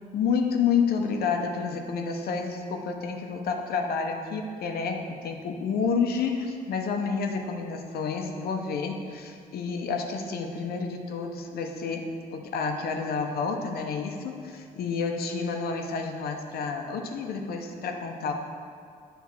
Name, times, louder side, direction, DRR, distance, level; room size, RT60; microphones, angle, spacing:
voice 1, 0.1-18.3, left 5 dB, 80° left, 3 dB, 0.8 m, -29 dB
9.5 x 3.4 x 5.9 m, 2.3 s
cardioid pair, 110°, 16 cm